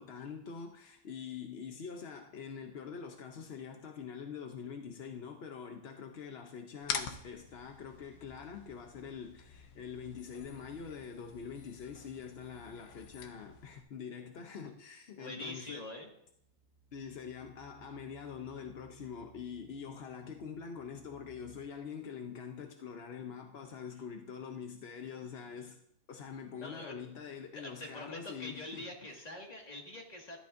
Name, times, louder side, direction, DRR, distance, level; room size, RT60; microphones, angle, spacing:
voice 1, 0.0-15.8 16.9-25.8 26.1-29.2, left 6 dB, 60° left, 0.6 m, -45 dB
sound 1, 6.8-13.8, left 7 dB, 80° left, 1.5 m, -45 dB
voice 2, 15.2-16.1 26.6-27.0 27.5-30.4, left 1 dB, 20° left, 1.9 m, -45 dB
sound 2, 16.2-21.6, right 2 dB, 55° right, 2.0 m, -61 dB
13.0 x 12.0 x 2.6 m
omnidirectional pair, 1.9 m